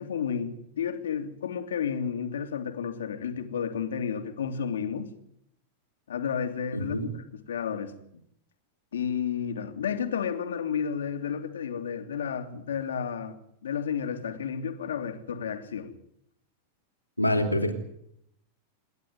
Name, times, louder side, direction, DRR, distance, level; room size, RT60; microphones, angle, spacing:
voice 1, 0.0-5.1 6.1-8.2 8.9-16.0, left 7 dB, 65° left, 2.5 m, -32 dB
voice 2, 6.7-7.1 17.2-17.7, left 1 dB, 90° left, 3.2 m, -26 dB
27.0 x 11.5 x 9.4 m
figure-of-eight pair, 90°, 0 cm